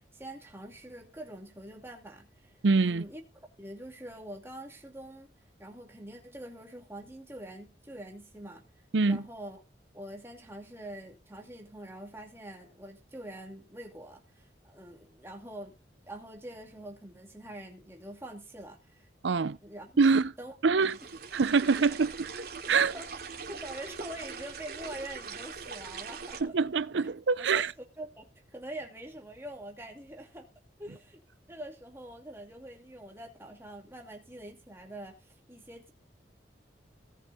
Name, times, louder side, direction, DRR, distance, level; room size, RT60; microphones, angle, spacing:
voice 1, 0.0-5.3 5.6-9.6 9.9-15.7 16.1-19.1 19.6-20.1 20.4-20.6 22.7-23.1 23.5-26.7 27.3-27.6 28.0-30.5 30.8-31.2 31.5-35.9, right 1 dB, 15° right, 2.6 m, -45 dB
voice 2, 2.6-3.0 8.9-9.2 19.2-19.6 20.0-20.3 20.6-21.0 21.3-22.4 22.7-22.9 26.4-27.7, right 4 dB, 80° right, 0.6 m, -25 dB
sound 1, 20.8-26.4, right 5 dB, 55° right, 2.6 m, -42 dB
18.0 x 6.3 x 4.2 m
head